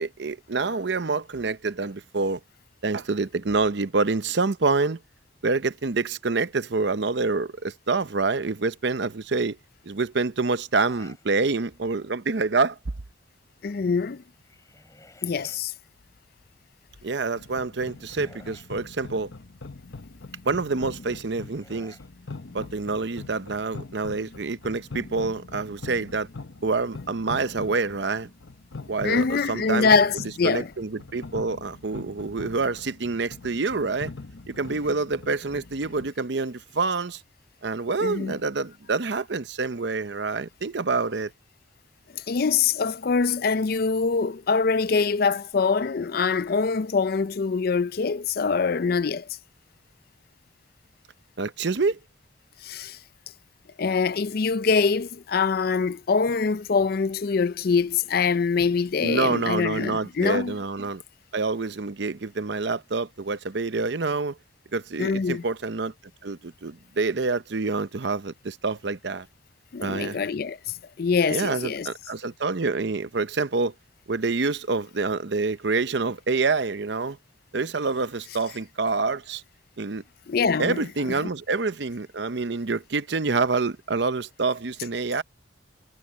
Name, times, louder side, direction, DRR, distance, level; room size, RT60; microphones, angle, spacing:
voice 1, 0.0-2.4 2.8-5.0 5.4-9.6 9.8-12.8 17.0-19.3 20.4-22.0 22.5-26.3 26.6-28.3 28.9-29.9 30.4-34.1 34.5-37.2 37.6-41.3 51.4-52.0 59.0-61.0 61.3-64.4 64.7-65.9 66.2-69.3 69.8-70.2 71.3-73.7 74.1-77.2 77.5-79.4 79.8-80.0 80.6-85.2, right 3 dB, 60° right, 0.7 m, -27 dB
sound 1, 10.8-11.3 11.8-12.2 14.2-15.6 17.3-18.8 20.7-22.1, left 2 dB, 15° left, 6.3 m, -54 dB
voice 2, 13.6-14.2 15.2-15.7 29.0-30.7 38.0-38.3 42.1-49.3 52.6-53.0 53.8-60.6 65.0-65.4 69.7-70.6 71.0-71.9 80.3-80.8, left 5 dB, 50° left, 0.4 m, -24 dB
sound 2, 17.3-36.1, left 3 dB, 75° left, 1.0 m, -42 dB
head